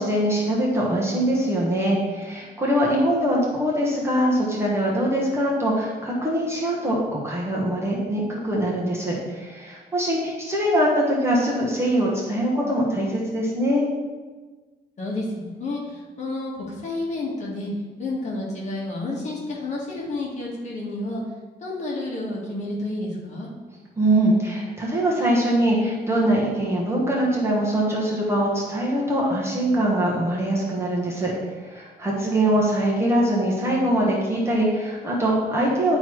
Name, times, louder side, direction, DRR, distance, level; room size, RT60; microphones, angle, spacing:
voice 1, 0.0-13.9 24.0-31.3 31.6-36.0, right 1 dB, 15° right, -4 dB, 1.3 m, -23 dB
voice 2, 15.0-17.7 18.0-21.2 21.6-23.5, left 2 dB, 40° left, -5 dB, 2.0 m, -30 dB
10.5 x 3.9 x 4.6 m, 1.3 s
wide cardioid pair, 175°, 17 cm